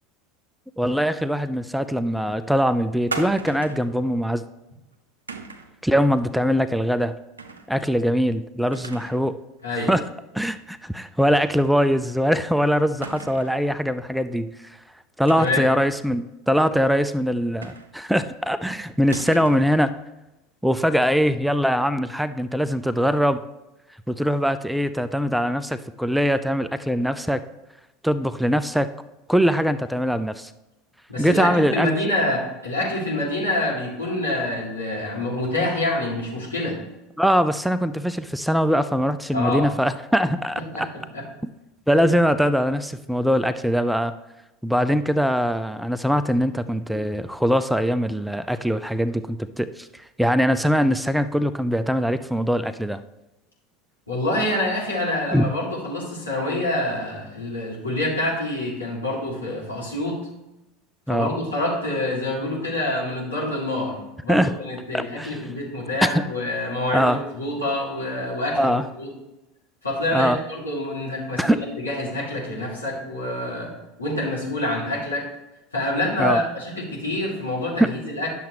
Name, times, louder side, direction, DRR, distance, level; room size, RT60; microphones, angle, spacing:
voice 1, 0.8-4.4 5.8-7.1 7.7-9.4 9.9-10.1 10.3-14.8 15.2-19.9 20.6-23.4 24.1-27.4 28.0-28.9 29.3-30.5 31.2-31.9 37.2-40.6 41.9-44.1 44.6-53.0 55.3-55.5 61.1-61.3 64.3-64.6 64.9-65.5 66.0-66.2 66.9-67.2 68.6-68.9 70.1-70.4 71.4-71.7 76.2-76.4 77.8-77.9, equal, ahead, 12 dB, 0.4 m, -22 dB
sound 1, 3.1-3.9 5.3-5.7 7.4-7.7 8.1-8.2 8.7-9.3 9.6-9.7 11.3-11.5 11.9-12.0 13.0-13.6 15.2-15.8 17.6-18.2 19.1-19.8, right 3 dB, 80° right, 0.6 m, -36 dB
voice 2, 15.3-15.7 31.1-36.8 39.3-39.6 40.6-41.2 54.1-60.2 61.1-64.0 64.2-69.1 69.8-73.7 74.0-75.3 75.7-78.3, left 1 dB, 85° left, -5 dB, 2.6 m, -26 dB
10.0 x 6.9 x 3.1 m, 0.98 s
figure-of-eight pair, 75°, 0 cm